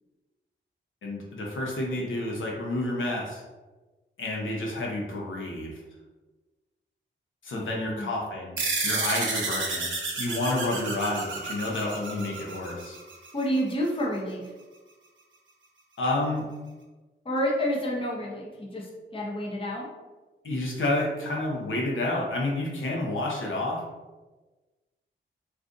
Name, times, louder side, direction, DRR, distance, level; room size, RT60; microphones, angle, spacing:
voice 1, 1.0-3.4 4.2-5.7 7.4-9.9 10.2-13.0 16.0-16.4 20.4-23.8, left 2 dB, 75° left, -2 dB, 0.8 m, -29 dB
voice 2, 7.5-8.1 13.3-14.5 17.2-19.8, equal, 25° left, -3 dB, 0.7 m, -29 dB
sound 1, 8.6-13.4, right 3 dB, 70° right, 0.8 m, -31 dB
2.5 x 2.4 x 3.7 m, 1.2 s
wide cardioid pair, 90°, 20 cm